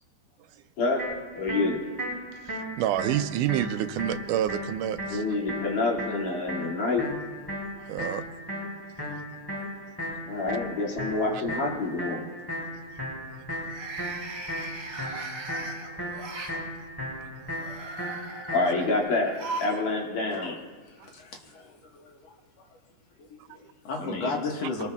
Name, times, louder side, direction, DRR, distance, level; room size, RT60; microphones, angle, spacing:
sound 1, 1.0-19.0, equal, 5° left, 5.4 m, -36 dB
voice 1, 1.3-1.8 5.1-7.1 10.3-12.2 18.5-20.6 24.0-24.4, left 3 dB, 80° left, -3 dB, 4.0 m, -27 dB
voice 2, 2.5-5.2 7.8-8.2 13.8-13.9 14.9-15.0 15.4-15.6 17.2-17.3 21.0-21.1, right 12 dB, 85° right, 10 dB, 2.1 m, -29 dB
sound 2, 10.2-10.6 11.0-11.4 13.5-16.6 17.4-19.8 20.1-20.2 21.3-21.4, right 3 dB, 50° right, 2.8 m, -39 dB
voice 3, 20.9-22.3 23.2-24.9, left 3 dB, 60° left, 1 dB, 2.5 m, -35 dB
24.0 x 19.0 x 2.4 m, 1.4 s
omnidirectional pair, 3.6 m